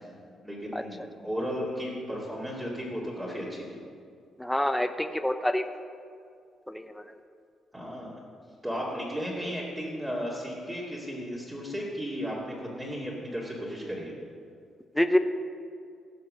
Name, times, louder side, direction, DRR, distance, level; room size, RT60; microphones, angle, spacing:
voice 1, 0.4-3.8 7.7-8.2 8.6-14.1, equal, 10° right, -7 dB, 2.6 m, -35 dB
voice 2, 4.4-5.6 6.7-7.0 15.0-15.2, left 1 dB, 5° left, 8 dB, 0.6 m, -26 dB
16.0 x 5.8 x 6.4 m, 2.2 s
cardioid pair, 90°, 0 cm